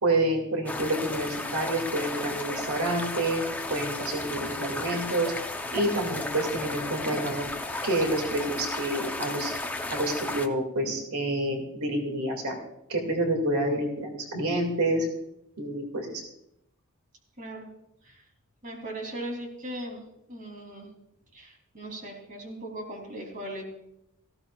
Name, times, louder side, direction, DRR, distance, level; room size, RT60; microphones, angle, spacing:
voice 1, 0.0-3.4 3.7-5.3 5.7-7.5 7.8-9.5 9.9-12.6 12.9-15.1 15.6-16.2, right 1 dB, 90° right, 3 dB, 2.4 m, -28 dB
sound 1, 0.7-10.5, left 2 dB, 5° left, 0.8 m, -34 dB
voice 2, 17.4-17.7 18.0-18.2 18.6-20.0 20.3-20.9 21.3-23.6, right 1 dB, 40° right, 1 dB, 3.3 m, -38 dB
18.0 x 15.5 x 2.4 m, 0.81 s
head